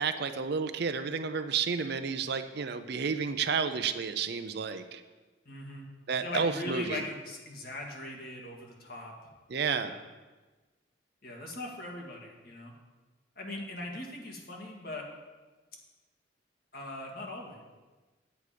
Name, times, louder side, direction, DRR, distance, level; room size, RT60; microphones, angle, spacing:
voice 1, 0.0-5.0 6.1-7.0 9.5-9.9, right 5 dB, 55° right, 10 dB, 0.5 m, -31 dB
voice 2, 5.5-5.9 6.2-9.3 9.8-10.0 11.2-12.7 13.4-15.1 16.7-17.6, left 2 dB, 50° left, 0 dB, 1.9 m, -40 dB
9.0 x 8.3 x 5.0 m, 1.2 s
head